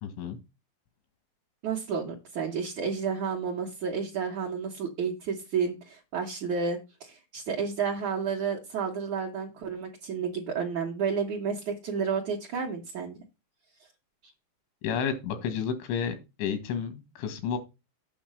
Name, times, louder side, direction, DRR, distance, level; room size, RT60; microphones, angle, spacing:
voice 1, 0.0-0.4 14.8-17.6, left 7 dB, 90° left, 9 dB, 4.1 m, -31 dB
voice 2, 1.6-13.2, right 6 dB, 60° right, -1 dB, 2.0 m, -31 dB
8.6 x 6.3 x 5.5 m, 0.26 s
omnidirectional pair, 5.3 m